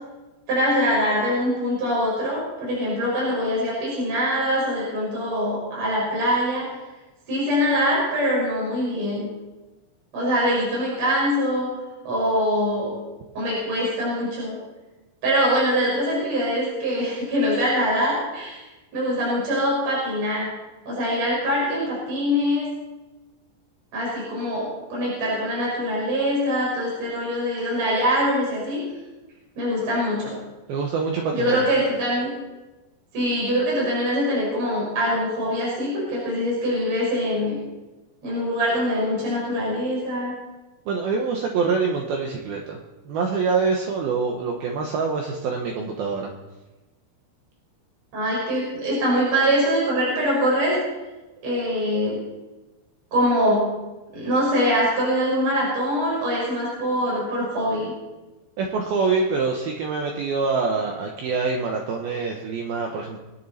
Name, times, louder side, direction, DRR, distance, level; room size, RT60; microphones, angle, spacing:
voice 1, 0.5-6.7 7.3-9.3 10.1-11.7 12.0-12.9 13.3-14.6 15.2-18.6 18.9-20.5 20.8-22.7 23.9-28.8 29.6-30.3 31.3-32.3 33.1-37.6 38.2-40.3 48.1-50.7 51.4-52.2 53.1-53.7 54.1-57.9, equal, 35° right, -6 dB, 6.4 m, -23 dB
voice 2, 30.7-31.7 40.9-42.8 43.1-46.3 58.6-63.2, right 4 dB, 80° right, 1 dB, 2.2 m, -25 dB
23.0 x 9.7 x 4.2 m, 1.1 s
omnidirectional pair, 6.0 m